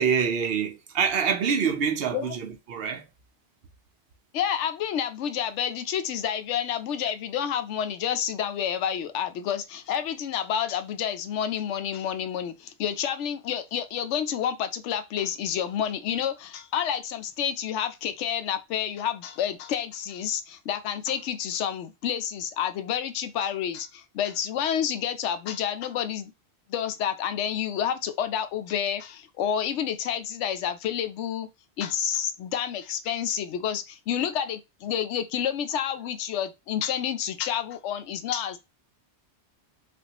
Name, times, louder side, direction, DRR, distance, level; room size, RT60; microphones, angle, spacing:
voice 1, 0.0-3.1, right 6 dB, 65° right, 0.8 m, -26 dB
voice 2, 4.3-26.3 26.7-31.5 31.8-38.6, left 9 dB, 90° left, 0.9 m, -29 dB
3.5 x 2.4 x 2.8 m
omnidirectional pair, 1.2 m